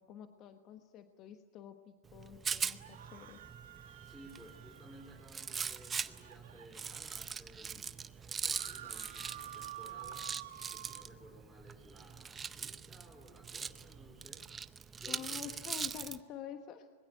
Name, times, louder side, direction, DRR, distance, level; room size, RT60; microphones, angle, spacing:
voice 1, 0.0-3.4 15.1-16.9, left 9 dB, 40° left, 7 dB, 1.2 m, -48 dB
Rattle, 2.1-16.2, right 6 dB, 20° right, 0.7 m, -42 dB
sound 1, 2.7-7.2 7.7-7.8 8.0-11.0, right 11 dB, 85° right, 2.0 m, -50 dB
voice 2, 4.0-10.4 10.7-14.5 14.9-15.7, equal, 5° left, -2 dB, 4.4 m, -57 dB
25.0 x 21.5 x 9.1 m, 1.5 s
hypercardioid pair, 125°, 0 cm